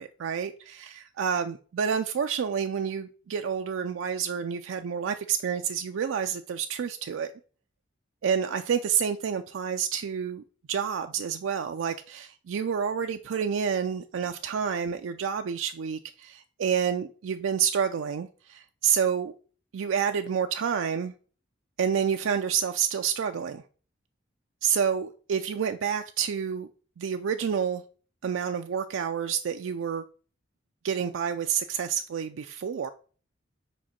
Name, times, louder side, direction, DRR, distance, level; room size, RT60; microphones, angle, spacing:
voice 1, 0.0-7.3 8.2-19.3 19.7-21.1 21.8-23.6 24.6-26.7 27.0-27.8 28.2-30.0 30.8-32.9, right 7 dB, 80° right, 0.4 m, -29 dB
5.1 x 3.7 x 5.7 m
head